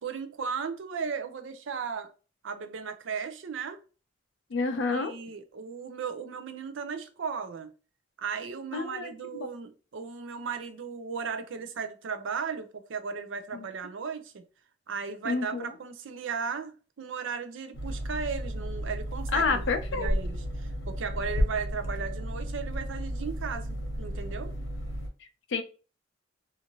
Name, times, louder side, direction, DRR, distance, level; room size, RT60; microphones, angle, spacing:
voice 1, 0.0-2.1 2.4-3.8 4.9-7.7 8.2-14.4 14.9-24.5, right 5 dB, 70° right, 0.5 m, -36 dB
voice 2, 4.5-5.1 8.7-9.5 13.5-13.7 15.2-15.7 19.3-20.1 25.5-25.6, left 4 dB, 65° left, 0.4 m, -29 dB
sound 1, 17.7-25.1, equal, 85° left, 0.8 m, -33 dB
2.6 x 2.5 x 2.9 m
head